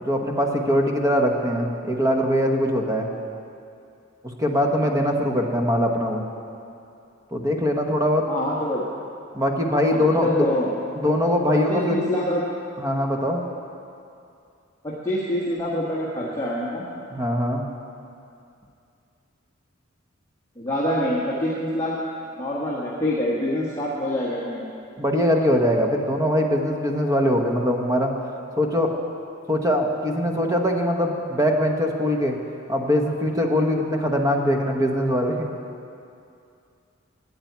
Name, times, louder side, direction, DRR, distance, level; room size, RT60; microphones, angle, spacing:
voice 1, 0.0-3.1 4.4-6.2 7.3-8.3 9.3-10.4 10.9-12.0 12.8-13.4 17.1-17.7 25.0-28.1 28.6-28.9 29.5-32.3 32.7-35.5, equal, 15° right, 2 dB, 1.0 m, -22 dB
voice 2, 8.3-8.8 9.9-10.7 11.5-12.4 14.8-16.9 20.6-21.9 22.3-24.7, left 1 dB, 15° left, -7 dB, 1.5 m, -26 dB
8.8 x 8.5 x 9.3 m, 2.5 s
head